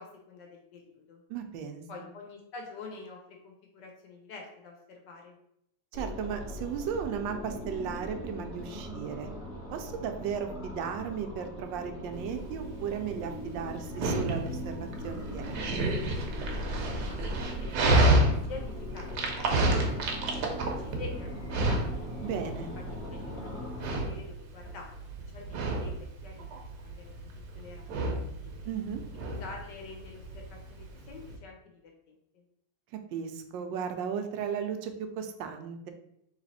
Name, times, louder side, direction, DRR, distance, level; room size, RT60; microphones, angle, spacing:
voice 1, 0.0-1.2 1.9-5.4 17.1-18.2 18.5-20.4 20.8-21.3 21.7-22.1 23.1-25.0 25.3-26.5 26.8-27.1 27.5-28.3 29.1-31.9 32.3-32.4, left 3 dB, 75° left, 1 dB, 1.5 m, -47 dB
voice 2, 1.3-1.8 5.9-9.3 9.7-15.9 22.2-22.7 28.7-29.0 33.1-35.9, right 7 dB, 90° right, 6 dB, 1.3 m, -35 dB
sound 1, 5.9-24.0, left 1 dB, 40° left, 1.1 m, -40 dB
Dog, 12.2-31.4, right 1 dB, 70° right, 1.3 m, -30 dB
3.3 x 3.2 x 4.0 m, 0.75 s
omnidirectional pair, 1.9 m